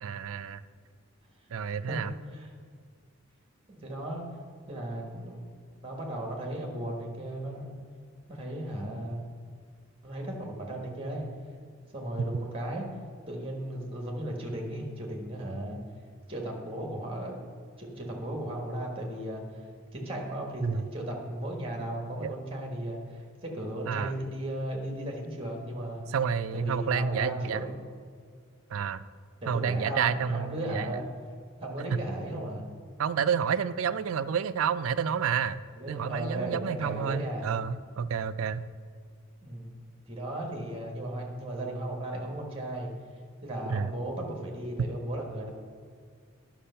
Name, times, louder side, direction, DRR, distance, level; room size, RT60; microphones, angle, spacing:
voice 1, 0.0-0.6 1.5-2.1 20.6-20.8 22.2-22.3 23.9-24.1 26.1-27.6 28.7-29.0 29.5-31.0 33.0-35.6 35.9-38.6 43.7-43.9, right 7 dB, 80° right, 14 dB, 0.4 m, -29 dB
voice 2, 1.9-2.5 3.7-4.2 4.7-5.4 5.8-7.7 8.3-9.2 10.0-11.3 11.9-12.9 13.3-15.8 16.3-17.4 17.8-26.0 26.5-27.7 29.4-31.0 31.6-32.6 35.7-37.5 39.4-39.8 40.1-42.9 43.4-45.5, right 1 dB, 25° right, 1 dB, 1.5 m, -36 dB
10.0 x 6.0 x 5.6 m, 2.1 s
head